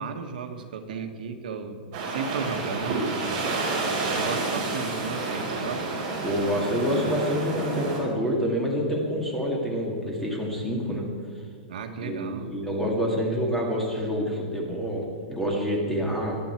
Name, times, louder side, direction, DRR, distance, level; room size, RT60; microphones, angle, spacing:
voice 1, 0.0-3.3 3.9-5.9 11.7-12.5, right 5 dB, 70° right, 5 dB, 1.5 m, -34 dB
sound 1, 1.9-8.0, right 3 dB, 30° right, 4.2 m, -29 dB
voice 2, 6.2-11.0 12.0-16.4, equal, 5° left, -2 dB, 2.1 m, -27 dB
20.0 x 12.0 x 4.5 m, 2.3 s
supercardioid pair, 175°, 5 cm